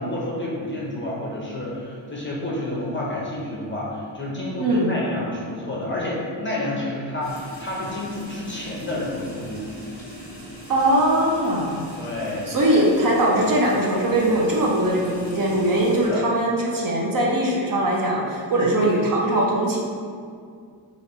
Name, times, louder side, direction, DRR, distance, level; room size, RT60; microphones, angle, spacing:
voice 1, 0.0-9.7 12.0-12.5 16.1-16.2 18.5-18.7, left 1 dB, 25° left, -5 dB, 0.6 m, -29 dB
voice 2, 4.6-4.9 10.7-11.8 12.5-19.8, right 1 dB, 45° right, -3 dB, 0.6 m, -21 dB
sound 1, 7.2-16.1, right 1 dB, 25° right, 1.3 m, -40 dB
3.3 x 2.5 x 4.2 m, 2.2 s
wide cardioid pair, 120°, 49 cm